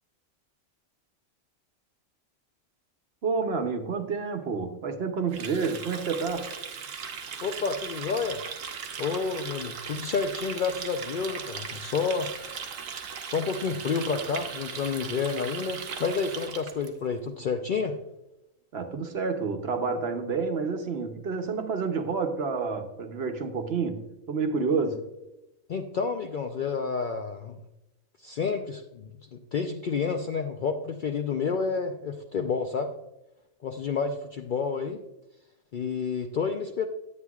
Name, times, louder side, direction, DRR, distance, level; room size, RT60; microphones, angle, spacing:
voice 1, 3.2-6.5 18.7-25.0, right 4 dB, 55° right, 1.0 m, -29 dB
Water tap faucet, 5.3-16.9, right 6 dB, 85° right, 1.1 m, -38 dB
voice 2, 7.4-8.4 9.0-12.3 13.2-18.0 25.7-27.6 28.2-32.9 33.6-35.0 35.7-36.9, left 5 dB, 60° left, 0.5 m, -30 dB
9.5 x 8.6 x 2.3 m
omnidirectional pair, 1.3 m